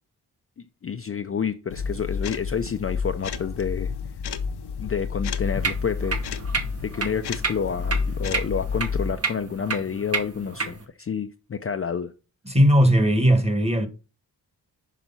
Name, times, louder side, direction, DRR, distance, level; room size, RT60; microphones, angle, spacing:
voice 1, 0.6-3.9 4.8-6.2 6.8-12.1, left 6 dB, 35° left, 0.5 m, -29 dB
sound 1, 1.7-9.1, left 5 dB, 80° left, 0.8 m, -30 dB
sound 2, 5.4-10.9, right 4 dB, 35° right, 1.1 m, -31 dB
voice 2, 12.4-13.9, equal, 15° right, 1.3 m, -18 dB
6.1 x 5.0 x 5.5 m
wide cardioid pair, 100°, 39 cm